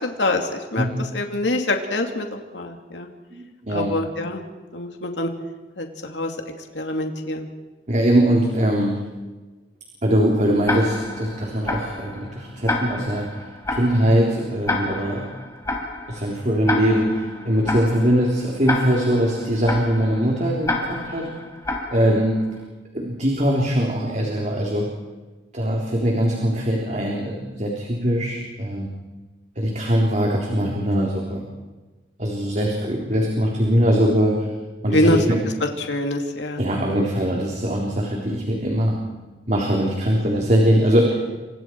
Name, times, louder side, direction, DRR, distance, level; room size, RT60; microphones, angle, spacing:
voice 1, 0.0-0.9 1.1-3.1 3.7-4.4 4.7-5.3 5.8-6.3 6.7-7.5 34.9-35.2 35.8-36.6, left 1 dB, 85° left, 3 dB, 2.6 m, -24 dB
voice 2, 3.3-4.0 7.9-9.0 10.0-13.3 13.7-15.3 16.1-21.3 21.9-22.4 22.9-24.9 25.5-28.9 29.6-31.4 32.2-34.4 34.8-35.4 36.6-39.0 39.5-41.2, equal, 40° right, -1 dB, 3.7 m, -21 dB
Tick-tock, 10.7-22.5, left 2 dB, 15° left, 4.1 m, -30 dB
29.5 x 26.0 x 4.7 m, 1.2 s
head